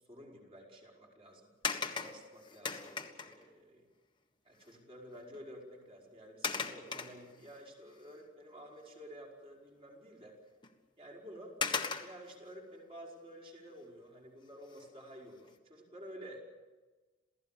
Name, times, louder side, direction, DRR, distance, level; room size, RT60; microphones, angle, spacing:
voice 1, 0.1-1.5 2.0-3.9 4.5-10.4 11.0-11.6 12.0-16.5, equal, 30° right, -1 dB, 5.2 m, -51 dB
sound 1, 1.6-3.5 4.7-4.8 5.2-5.4 6.4-7.6 8.1-8.2 10.6-10.7 11.6-12.4 14.6-15.0 15.5-15.6, left 5 dB, 25° left, 1.6 m, -38 dB
28.0 x 16.5 x 7.5 m, 1.3 s
head